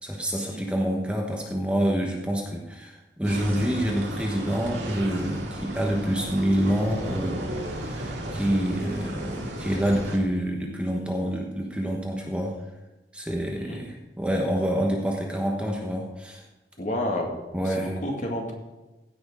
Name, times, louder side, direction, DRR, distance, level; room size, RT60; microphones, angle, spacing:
voice 1, 0.0-12.6 13.1-16.4 17.5-17.9, equal, 5° right, 0 dB, 1.1 m, -27 dB
sound 1, 3.2-10.2, right 1 dB, 90° right, 2.2 m, -34 dB
voice 2, 16.8-17.4 17.6-18.5, left 1 dB, 45° left, 1 dB, 2.1 m, -30 dB
16.0 x 6.1 x 4.9 m, 1.1 s
head